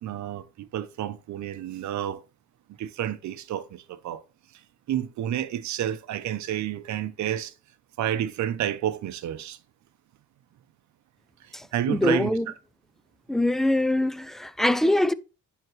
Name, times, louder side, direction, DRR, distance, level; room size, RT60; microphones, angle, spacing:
voice 1, 0.0-2.2 2.7-4.2 4.5-4.6 4.9-7.5 8.0-9.6 11.4-12.4, right 11 dB, 70° right, 0.7 m, -30 dB
voice 2, 11.5-12.5 13.3-15.1, left 1 dB, ahead, 0.3 m, -23 dB
10.5 x 3.6 x 3.1 m
cardioid pair, 90°, 30 cm